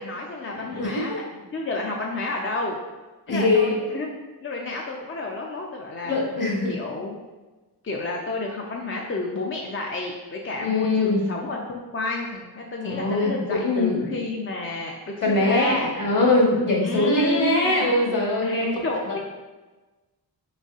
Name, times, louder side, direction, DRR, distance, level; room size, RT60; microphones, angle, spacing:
voice 1, 0.0-2.8 3.3-6.2 6.7-7.2 7.8-15.9 16.8-17.9 18.4-19.2, left 2 dB, 30° left, -1 dB, 0.4 m, -31 dB
voice 2, 0.6-1.2 3.3-3.7 6.1-6.7 10.6-11.2 12.8-14.1 15.2-18.7 19.1-19.2, left 2 dB, 50° left, -2 dB, 1.2 m, -22 dB
4.6 x 4.0 x 2.4 m, 1.2 s
wide cardioid pair, 105°, 41 cm